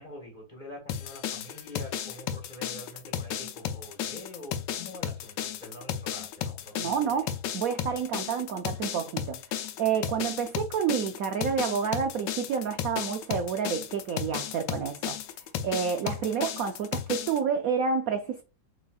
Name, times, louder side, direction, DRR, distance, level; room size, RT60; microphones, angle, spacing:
voice 1, 0.0-7.3, left 1 dB, 25° left, 1.3 m, -45 dB
sound 1, 0.9-17.4, left 9 dB, 75° left, 1.2 m, -34 dB
voice 2, 6.8-9.4 9.8-15.2 15.6-18.4, right 7 dB, 75° right, 0.8 m, -29 dB
6.1 x 3.1 x 2.3 m
omnidirectional pair, 2.0 m